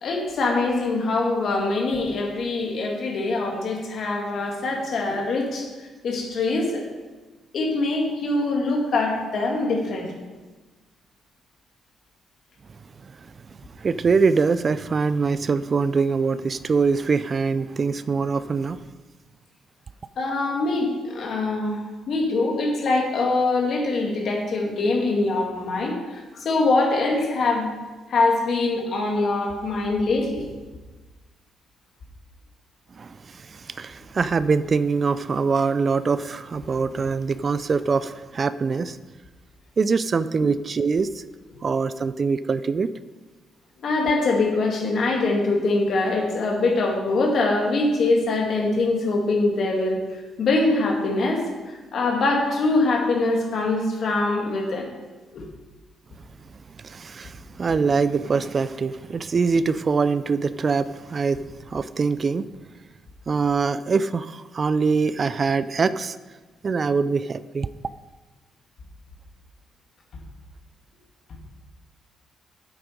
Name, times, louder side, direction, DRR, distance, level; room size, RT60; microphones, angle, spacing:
voice 1, 0.0-5.7 6.0-6.8 7.5-10.3 20.2-27.7 28.1-30.4 43.8-50.0 50.4-54.9 55.3-55.5, left 3 dB, 60° left, 1 dB, 2.3 m, -23 dB
voice 2, 13.8-18.8 33.0-33.1 33.5-39.0 39.8-41.1 41.6-42.9 56.8-61.4 61.7-62.5 63.3-66.2 66.6-67.7, right 5 dB, 40° right, 15 dB, 0.4 m, -23 dB
8.9 x 7.9 x 5.2 m, 1.2 s
cardioid pair, 90°, 0 cm